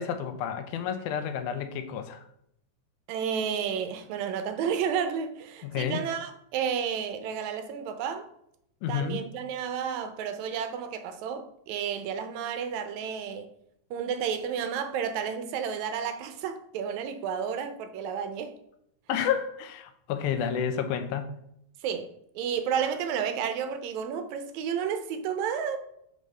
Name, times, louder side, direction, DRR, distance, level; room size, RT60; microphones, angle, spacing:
voice 1, 0.0-2.2 5.6-6.0 8.8-9.2 19.1-21.4, left 8 dB, 90° left, 2.1 m, -30 dB
voice 2, 3.1-8.3 8.9-13.5 13.9-18.5 20.4-20.5 21.8-22.1 22.4-25.8, right 7 dB, 80° right, 1.9 m, -31 dB
6.4 x 5.2 x 3.2 m
omnidirectional pair, 3.5 m